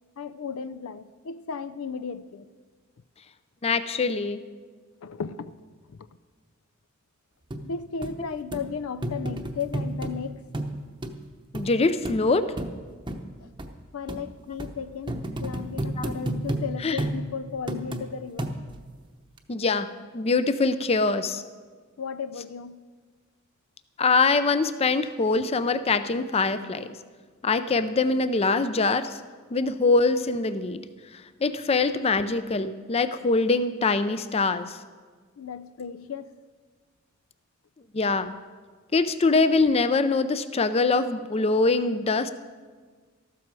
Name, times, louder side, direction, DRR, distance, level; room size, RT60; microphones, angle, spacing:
voice 1, 0.2-2.5 5.0-5.6 5.9-6.1 7.6-10.4 13.4-13.5 13.9-18.5 22.0-22.8 35.4-36.3, left 6 dB, 85° left, 0.5 m, -35 dB
voice 2, 3.6-4.4 11.5-12.5 16.8-17.0 19.5-21.4 24.0-27.0 27.4-29.2 29.5-30.9 31.4-34.8 37.9-38.3 38.9-42.3, left 3 dB, 30° left, 0.5 m, -23 dB
sound 1, 7.5-7.6 8.0-8.1 8.5-8.6 9.0-10.1 10.5-10.7 11.0-11.1 11.5-11.7 12.0-12.2 12.6-12.7 13.1-13.2 13.6-13.7 14.1-14.2 14.6-14.7 15.1-16.6 17.0-17.2 17.7-18.0 18.4-18.8 19.4-19.5, right 1 dB, 20° right, 0.8 m, -30 dB
13.5 x 12.5 x 4.7 m
head